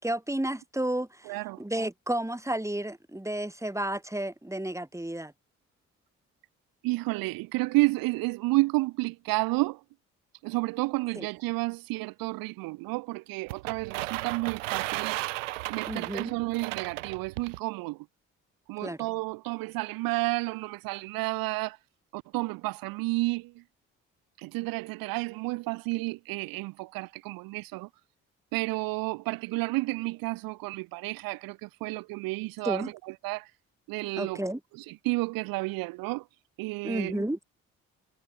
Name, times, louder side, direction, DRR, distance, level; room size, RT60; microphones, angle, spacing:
voice 1, 0.0-5.3 11.2-11.3 15.9-16.3 18.8-19.0 32.6-32.9 34.2-34.6 36.8-37.4, right 1 dB, 10° right, 5.4 m, -32 dB
voice 2, 1.3-1.6 6.8-9.8 10.4-15.2 15.7-18.1 18.7-21.8 22.1-23.6 24.4-27.9 28.5-33.5 33.9-34.4 34.8-36.3 36.6-37.2, right 22 dB, 70° right, 0.7 m, -31 dB
sound 1, 13.5-17.6, right 20 dB, 85° right, 1.5 m, -34 dB
hypercardioid pair, 45°, 36 cm